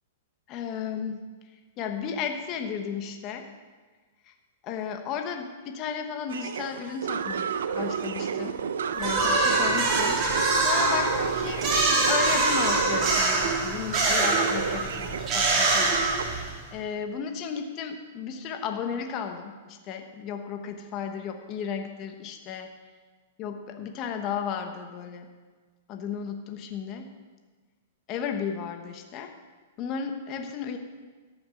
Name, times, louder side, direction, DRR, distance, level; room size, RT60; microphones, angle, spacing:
voice 1, 0.5-1.2 1.8-3.5 4.2-4.3 4.6-8.6 8.9-10.2 10.6-22.7 23.4-25.3 25.9-27.1 28.1-29.4 29.8-30.8, left 7 dB, 30° left, 5 dB, 1.2 m, -34 dB
sound 1, 6.3-16.2, right 7 dB, 90° right, 0.8 m, -31 dB
sound 2, 9.0-16.7, right 2 dB, 25° right, 2.7 m, -25 dB
13.5 x 8.9 x 6.3 m, 1.4 s
hypercardioid pair, 155°, 0 cm